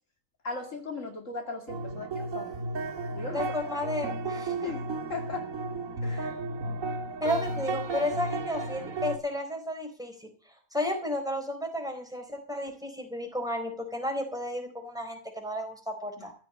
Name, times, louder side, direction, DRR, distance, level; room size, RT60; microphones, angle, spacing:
voice 1, 0.4-2.6 3.1-3.5 4.6-5.5 6.0-6.3 7.3-7.4 16.2-16.3, left 3 dB, 65° left, 4 dB, 2.6 m, -38 dB
sound 1, 1.7-9.2, right 3 dB, 70° right, 2.1 m, -34 dB
voice 2, 3.3-4.5 7.2-10.3 10.7-16.3, left 1 dB, 5° right, 4 dB, 4.1 m, -33 dB
15.0 x 7.2 x 8.7 m, 0.41 s
omnidirectional pair, 1.4 m